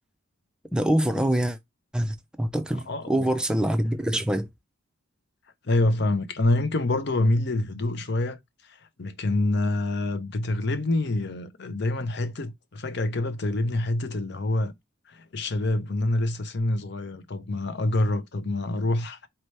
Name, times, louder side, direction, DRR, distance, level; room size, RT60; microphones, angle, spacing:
voice 1, 0.7-1.6 1.9-4.5, right 1 dB, 5° right, 0.5 m, -25 dB
voice 2, 2.9-3.3 5.6-8.4 8.6-14.7 15.1-19.3, left 2 dB, 55° left, 0.7 m, -26 dB
4.3 x 2.9 x 3.3 m
head